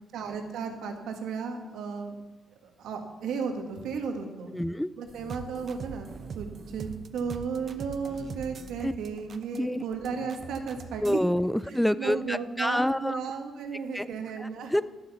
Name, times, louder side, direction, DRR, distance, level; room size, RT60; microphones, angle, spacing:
voice 1, 0.1-2.1 2.8-4.5 5.0-6.1 6.3-6.5 6.7-11.2 11.7-14.7, right 5 dB, 80° right, 4 dB, 1.7 m, -34 dB
voice 2, 4.5-4.9 8.8-8.9 9.5-9.8 11.0-13.2 13.9-14.1 14.4-14.8, equal, 5° left, 17 dB, 0.3 m, -27 dB
sound 1, 5.1-11.2, right 5 dB, 50° right, 0.7 m, -43 dB
11.5 x 7.1 x 7.0 m, 1.2 s
cardioid pair, 90°, 0 cm